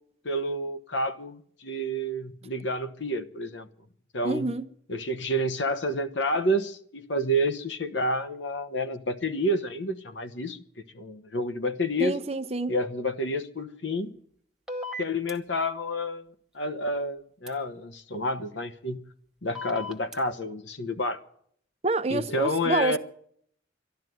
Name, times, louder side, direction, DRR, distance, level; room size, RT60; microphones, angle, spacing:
voice 1, 0.2-3.7 4.1-4.5 4.9-10.6 10.9-12.2 12.7-14.1 15.0-19.0 19.4-21.2 22.1-23.0, equal, 75° left, 1.1 m, -29 dB
voice 2, 4.2-4.7 12.0-12.7 21.8-23.0, right 2 dB, 30° right, 0.7 m, -27 dB
sound 1, 14.7-15.3 17.5-17.6 19.6-20.2, left 1 dB, 5° right, 1.3 m, -36 dB
12.5 x 12.0 x 9.3 m
head